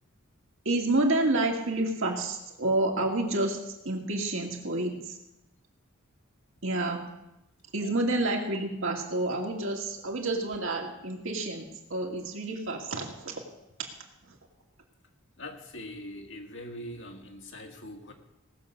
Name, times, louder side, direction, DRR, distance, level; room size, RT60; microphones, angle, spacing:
voice 1, 0.6-5.2 6.6-7.0 7.7-13.4 14.2-14.4, right 2 dB, 65° right, 1 dB, 2.3 m, -29 dB
voice 2, 15.4-18.1, left 1 dB, 60° left, 3 dB, 1.8 m, -42 dB
18.5 x 6.8 x 6.6 m, 0.90 s
head